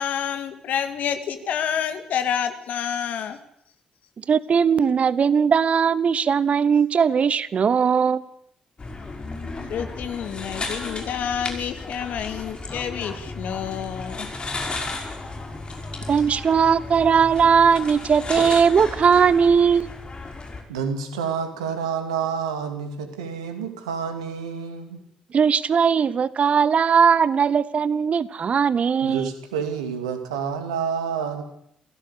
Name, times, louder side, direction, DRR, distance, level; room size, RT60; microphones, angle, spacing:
voice 1, 0.0-3.4 9.7-14.3, left 8 dB, 60° left, 9 dB, 2.4 m, -28 dB
voice 2, 4.3-8.2 16.1-19.9 25.3-29.3, right 6 dB, 45° right, 19 dB, 1.0 m, -19 dB
sound 1, 8.8-20.6, left 3 dB, 30° left, 5.7 m, -34 dB
voice 3, 20.7-25.0 29.0-31.4, right 6 dB, 80° right, 7 dB, 2.6 m, -29 dB
28.0 x 16.5 x 8.3 m, 0.75 s
figure-of-eight pair, 40°, 3 cm